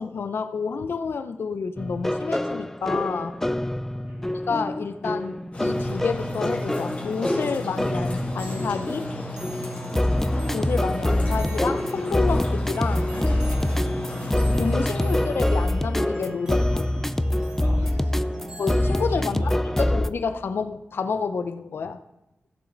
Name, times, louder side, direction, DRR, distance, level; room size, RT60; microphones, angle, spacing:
voice 1, 0.0-3.4 4.5-9.1 10.5-13.1 14.6-17.1 18.6-19.5 19.9-22.0, left 5 dB, 70° left, 10 dB, 0.6 m, -29 dB
sound 1, 1.8-20.1, left 1 dB, 10° left, 0.3 m, -25 dB
sound 2, 5.5-15.2, left 1 dB, 35° left, 2.2 m, -35 dB
sound 3, 8.3-19.1, right 1 dB, 15° right, 2.1 m, -42 dB
voice 2, 17.5-18.5 19.1-20.0, right 2 dB, 85° right, -6 dB, 2.9 m, -43 dB
15.5 x 7.1 x 3.9 m, 0.89 s
wide cardioid pair, 170°, 4 cm